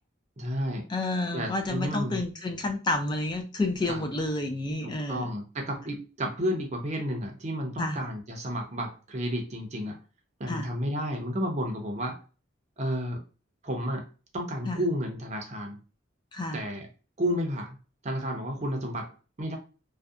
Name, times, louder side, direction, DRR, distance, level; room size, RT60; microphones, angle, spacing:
voice 1, 0.4-0.9 1.3-2.2 3.9-4.0 4.8-10.0 10.4-12.2 12.8-13.2 13.6-14.1 14.3-15.8 16.5-16.9 17.2-17.8 18.0-19.6, equal, 35° right, 2 dB, 0.5 m, -31 dB
voice 2, 0.9-5.3 7.8-8.0 10.5-10.7 14.7-14.8 16.3-16.6, left 2 dB, 20° left, 6 dB, 0.3 m, -30 dB
2.6 x 2.1 x 2.3 m, 0.34 s
head